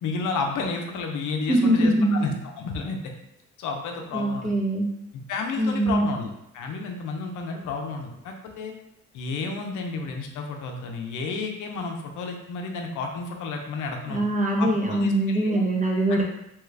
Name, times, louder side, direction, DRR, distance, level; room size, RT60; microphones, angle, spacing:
voice 1, 0.0-3.0 3.6-4.5 5.3-8.7 9.1-14.2 14.6-15.6 16.1-16.2, left 4 dB, 80° left, 2 dB, 0.6 m, -31 dB
voice 2, 1.5-2.2 4.1-4.9 5.6-6.1 14.1-16.2, right 1 dB, 25° right, -2 dB, 0.8 m, -22 dB
3.0 x 2.3 x 3.2 m, 0.83 s
cardioid pair, 90°, 30 cm